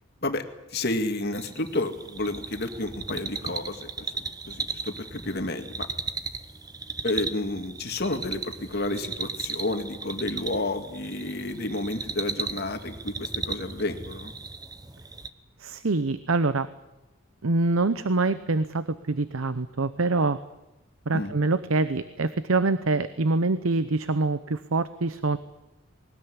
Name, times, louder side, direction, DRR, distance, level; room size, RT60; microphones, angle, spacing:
voice 1, 0.7-5.9 7.0-14.3 21.1-21.3, left 2 dB, 50° left, 7 dB, 2.1 m, -31 dB
sound 1, 1.3-15.3, right 4 dB, 20° right, 0.9 m, -36 dB
voice 2, 15.6-16.7 17.4-20.4 21.1-25.4, right 3 dB, 80° right, 13 dB, 0.8 m, -25 dB
20.5 x 19.0 x 9.9 m, 0.95 s
head